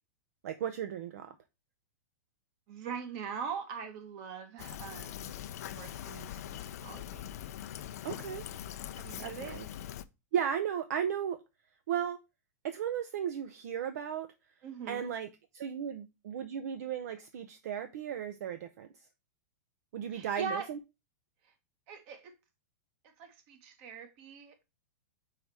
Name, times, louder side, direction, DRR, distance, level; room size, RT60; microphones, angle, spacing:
voice 1, 0.4-1.3 8.0-8.4 9.2-9.7 10.3-11.4 11.9-12.2 12.6-14.3 14.9-15.3 15.5-18.9 19.9-20.8, right 9 dB, 70° right, 0.6 m, -35 dB
voice 2, 2.7-5.3 5.6-6.3 6.8-7.3 8.9-9.6 14.6-15.1 20.1-20.7 21.9-22.3 23.2-24.7, right 6 dB, 50° right, 1.4 m, -41 dB
Fill (with liquid), 4.6-10.0, left 11 dB, 70° left, 0.5 m, -42 dB
4.8 x 4.2 x 4.6 m
hypercardioid pair, 120°, 9 cm